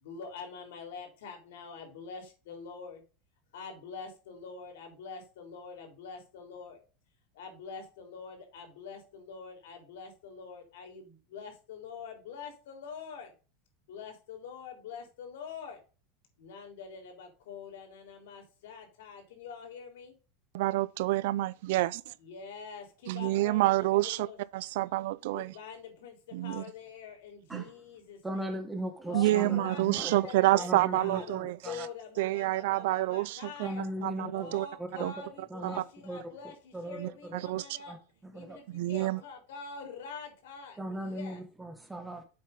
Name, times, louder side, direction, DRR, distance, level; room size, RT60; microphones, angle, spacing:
voice 1, 0.0-3.0 3.5-6.8 7.3-13.3 13.9-15.8 16.4-20.1 22.2-24.4 25.3-28.4 29.1-31.4 31.6-33.8 34.3-37.9 38.3-41.4, left 5 dB, 80° left, 3.6 m, -45 dB
voice 2, 20.5-22.1 23.1-24.3 24.5-25.5 26.3-26.7 27.5-27.6 29.1-31.9 32.2-33.7 34.0-34.7 34.9-35.1 35.6-35.8 37.0-37.6 38.7-39.2, right 17 dB, 65° right, 0.4 m, -28 dB
voice 3, 28.2-30.1 30.5-31.9 33.6-36.3 36.7-38.0 38.2-38.6 39.0-39.1 40.8-42.2, right 1 dB, 5° right, 1.2 m, -39 dB
7.7 x 5.5 x 5.3 m
supercardioid pair, 175°, 0 cm